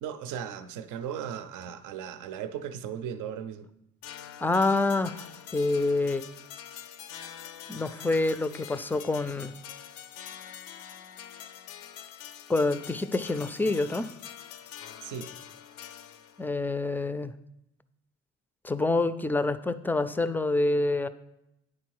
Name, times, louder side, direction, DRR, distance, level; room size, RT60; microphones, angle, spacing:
voice 1, 0.0-3.7 15.0-15.3, right 8 dB, 80° right, 10 dB, 0.6 m, -37 dB
sound 1, 4.0-16.5, left 9 dB, 80° left, 0.5 m, -45 dB
voice 2, 4.4-6.2 7.7-9.5 12.5-14.1 16.4-17.3 18.6-21.1, left 2 dB, 5° left, 12 dB, 0.3 m, -27 dB
9.8 x 3.9 x 4.6 m, 0.84 s
cardioid pair, 90°, 30 cm